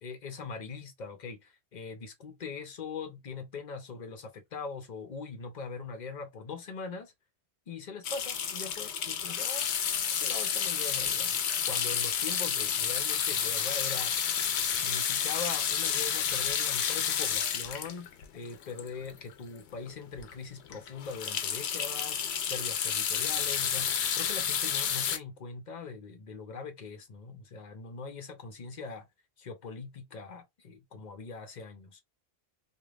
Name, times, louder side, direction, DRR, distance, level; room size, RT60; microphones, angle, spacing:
voice 1, 0.0-7.1 7.7-14.2 14.7-18.1 18.3-29.0 29.4-32.0, left 5 dB, 45° left, 0.8 m, -42 dB
sound 1, 8.0-19.3 19.8-19.9 20.2-20.3 20.7-25.2, left 8 dB, 85° left, 0.9 m, -30 dB
3.2 x 2.5 x 2.4 m
omnidirectional pair, 1.1 m